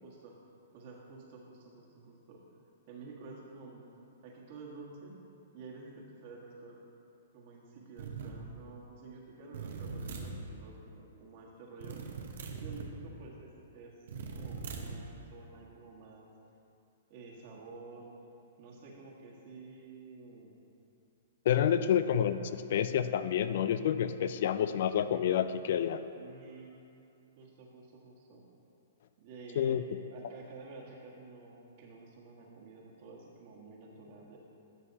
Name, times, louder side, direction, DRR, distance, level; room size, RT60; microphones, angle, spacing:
voice 1, 0.0-0.4 0.7-2.4 2.9-3.8 4.2-5.2 5.5-6.8 7.3-12.2 12.6-14.1 14.3-16.3 17.1-18.1 18.6-20.5 21.7-21.9 26.1-26.8 27.4-28.4 29.2-29.8 30.1-34.4, right 3 dB, 50° right, -2 dB, 1.6 m, -50 dB
sound 1, 8.0-8.4 9.5-10.4 11.8-12.9 14.1-15.0, right 4 dB, 65° right, 0.9 m, -41 dB
voice 2, 21.5-26.0 29.6-29.8, left 9 dB, 60° left, 12 dB, 0.3 m, -29 dB
12.5 x 6.3 x 2.8 m, 2.7 s
hypercardioid pair, 130°, 0 cm